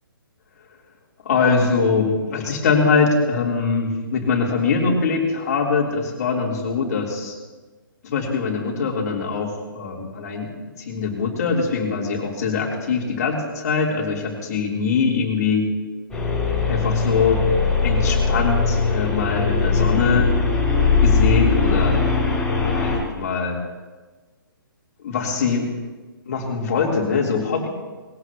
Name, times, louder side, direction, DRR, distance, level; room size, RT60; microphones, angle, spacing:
voice 1, 1.3-7.4 8.0-15.7 16.7-17.4 17.8-20.3 21.0-22.1 22.6-23.6 25.0-25.7 26.3-27.7, left 5 dB, 45° left, -1 dB, 3.5 m, -22 dB
sound 1, 16.1-23.0, left 4 dB, 5° left, 3.9 m, -20 dB
21.0 x 16.0 x 3.0 m, 1.3 s
figure-of-eight pair, 135°, 12 cm